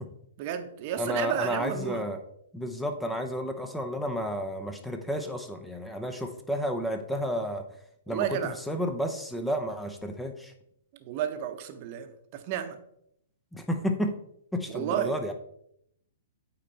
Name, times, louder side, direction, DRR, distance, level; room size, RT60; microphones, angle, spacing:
voice 1, 0.4-2.0 8.1-8.6 11.0-12.8 14.7-15.2, right 10 dB, 40° right, 0.9 m, -32 dB
voice 2, 1.0-2.2 2.5-7.6 8.1-10.5 13.5-14.2 14.5-15.3, equal, 5° left, 0.8 m, -31 dB
8.8 x 4.2 x 4.4 m
figure-of-eight pair, 115°, 0 cm